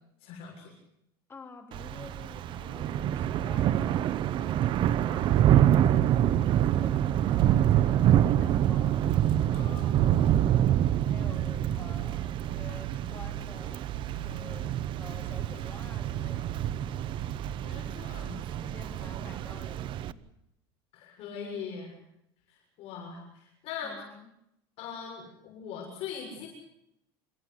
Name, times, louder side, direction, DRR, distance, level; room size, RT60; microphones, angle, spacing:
voice 1, 0.2-0.7 9.5-10.3 17.6-18.4 20.9-21.9 22.5-23.9 24.8-26.5, left 6 dB, 50° left, 0 dB, 6.8 m, -41 dB
voice 2, 1.3-9.1 9.5-9.8 11.1-16.7 17.8-18.0 18.5-20.3 23.8-24.3, left 4 dB, 20° left, 4 dB, 3.5 m, -50 dB
Thunder / Rain, 1.7-20.1, right 11 dB, 40° right, 0.8 m, -26 dB
27.5 x 14.5 x 8.1 m, 0.79 s
cardioid pair, 150°, 13 cm